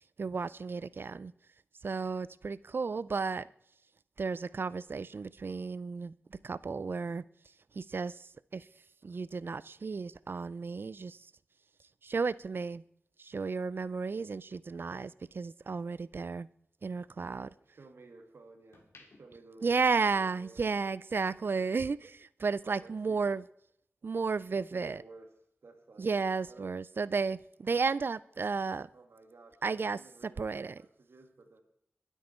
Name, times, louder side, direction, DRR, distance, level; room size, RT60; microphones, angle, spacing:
voice 1, 0.2-1.3 1.8-3.5 4.2-7.2 7.7-8.7 9.0-11.3 12.0-12.8 13.2-16.5 16.8-17.5 19.6-23.4 24.0-25.0 26.0-28.9 29.6-30.0 30.4-30.8, right 4 dB, 60° right, 19 dB, 0.4 m, -33 dB
sound 1, 14.2-16.2 16.6-18.1 18.5-20.6 20.9-21.2, left 3 dB, 80° left, 2.1 m, -64 dB
voice 2, 17.1-20.6 22.6-23.4 24.5-25.3 25.6-26.1 26.5-26.7 28.9-31.6, right 3 dB, 80° right, 5 dB, 2.0 m, -55 dB
21.5 x 8.2 x 4.4 m, 0.72 s
wide cardioid pair, 90°, 4 cm